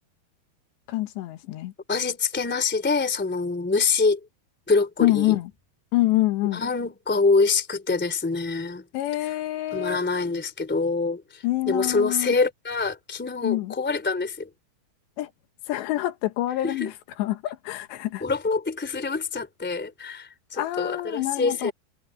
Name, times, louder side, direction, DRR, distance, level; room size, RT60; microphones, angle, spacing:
voice 1, 0.9-1.7 5.0-5.5 5.9-6.6 8.9-10.0 11.4-12.3 13.4-13.7 15.2-15.3 15.7-18.2 20.6-21.7, left 16 dB, 80° left, 3.2 m, -26 dB
voice 2, 1.9-4.2 4.7-5.4 6.5-8.8 9.7-14.5 16.6-16.9 18.2-21.7, left 4 dB, 5° left, 2.1 m, -25 dB
omnidirectional pair, 5.1 m